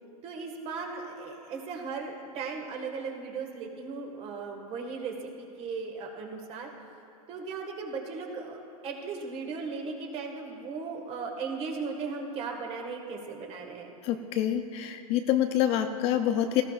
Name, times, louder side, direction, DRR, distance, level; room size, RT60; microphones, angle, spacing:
voice 1, 0.2-6.7 7.3-13.9, right 4 dB, 30° right, 2 dB, 1.8 m, -37 dB
voice 2, 14.0-16.6, left 11 dB, 30° left, 7 dB, 0.5 m, -26 dB
18.5 x 14.5 x 2.5 m, 2.8 s
hypercardioid pair, 135°, 19 cm